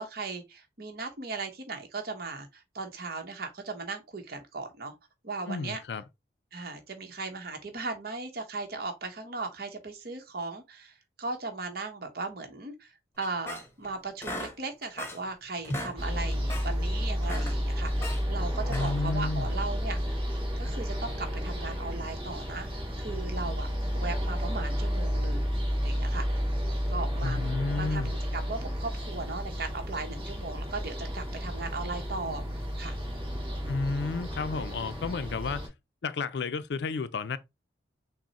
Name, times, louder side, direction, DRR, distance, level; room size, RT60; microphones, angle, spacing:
voice 1, 0.0-4.9 5.2-5.8 6.5-20.2 20.6-23.7 23.9-25.5 25.8-26.3 26.9-28.1 28.3-33.0, right 3 dB, 55° right, 1.0 m, -37 dB
voice 2, 5.5-6.0 18.7-19.5 27.2-28.2 33.7-35.7 36.0-37.4, left 4 dB, 65° left, 0.4 m, -32 dB
sound 1, 13.2-13.9 14.2-15.3 15.6-16.0 16.3-16.7 17.1-18.2 18.6-19.1, left 1 dB, 15° left, 1.0 m, -38 dB
sound 2, 16.0-35.7, equal, 30° right, 1.9 m, -31 dB
6.1 x 2.1 x 4.1 m
head